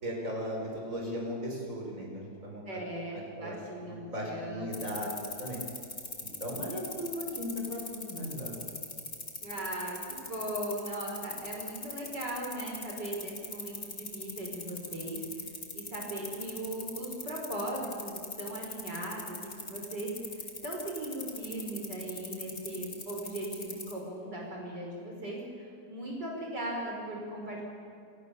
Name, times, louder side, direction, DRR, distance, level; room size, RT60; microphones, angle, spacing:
voice 1, 0.0-2.8 3.4-3.5 3.8-5.1 5.4-5.6 6.2-8.5, equal, 45° right, 0 dB, 5.9 m, -37 dB
voice 2, 2.7-5.0 9.4-27.6, right 1 dB, 65° right, -1 dB, 5.5 m, -38 dB
sound 1, 4.7-23.9, left 3 dB, 50° left, 4.0 m, -40 dB
27.5 x 27.0 x 7.1 m, 2.4 s
omnidirectional pair, 2.0 m